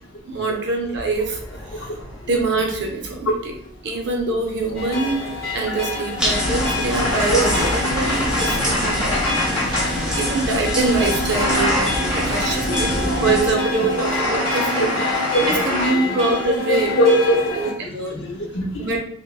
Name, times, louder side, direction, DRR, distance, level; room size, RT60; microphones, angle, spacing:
voice 1, 0.2-1.4 1.7-1.9 2.3-3.5 3.8-9.3 10.2-12.9 13.2-15.0 15.5-16.9 17.6-18.2 18.8-19.0, right 3 dB, 55° right, 2 dB, 0.6 m, -24 dB
sound 1, 1.1-3.3 4.5-10.0 11.2-12.6 13.8-15.9, left 1 dB, 25° left, 1.0 m, -27 dB
sound 2, 4.7-17.7, left 2 dB, 45° left, 1.0 m, -27 dB
sound 3, 6.2-13.5, equal, 5° right, 0.4 m, -25 dB
voice 2, 12.7-13.1 15.3-15.6 15.9-16.0 17.0-17.5 18.1-18.9, equal, 65° left, 1 dB, 0.6 m, -20 dB
3.3 x 2.1 x 2.3 m, 0.65 s
head